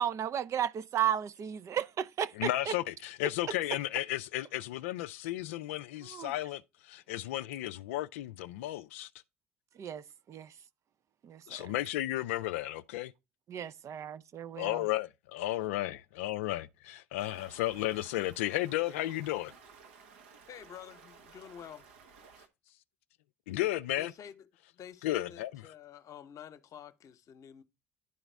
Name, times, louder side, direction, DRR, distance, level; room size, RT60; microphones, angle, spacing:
voice 1, 0.0-2.7 3.5-3.6 6.1-6.4 9.8-10.5 11.2-11.7 13.5-14.8, right 9 dB, 45° right, 0.5 m, -34 dB
voice 2, 2.4-9.1 11.5-13.1 14.5-19.5 23.5-24.1 25.0-25.5, left 15 dB, 75° left, 0.3 m, -34 dB
Stream, 17.2-22.5, right 5 dB, 80° right, 1.1 m, -56 dB
voice 3, 20.5-21.9 24.0-24.5 24.8-27.6, left 9 dB, 50° left, 0.9 m, -49 dB
11.0 x 4.0 x 4.5 m
hypercardioid pair, 55°, 7 cm